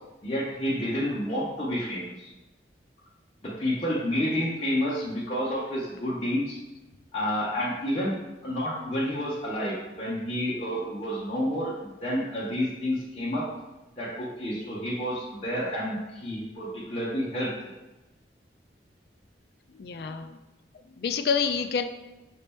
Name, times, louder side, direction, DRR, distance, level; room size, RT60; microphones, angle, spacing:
voice 1, 0.2-2.3 3.4-6.6 7.1-13.5 14.0-17.5, equal, 30° left, -7 dB, 0.7 m, -29 dB
voice 2, 19.7-20.4 21.0-21.8, left 6 dB, 60° left, 8 dB, 0.3 m, -28 dB
5.2 x 2.8 x 3.4 m, 1.0 s
head